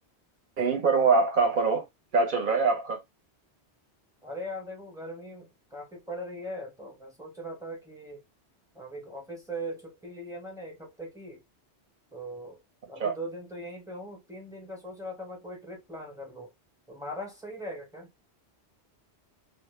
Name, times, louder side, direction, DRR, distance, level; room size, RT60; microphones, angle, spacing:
voice 1, 0.6-1.8 2.1-3.0 13.0-13.1, right 4 dB, 55° right, 0.7 m, -23 dB
voice 2, 4.2-8.2 8.7-11.4 12.1-12.6 12.9-16.5 16.9-18.1, equal, 5° right, 0.6 m, -40 dB
2.0 x 2.0 x 3.0 m
omnidirectional pair, 1.2 m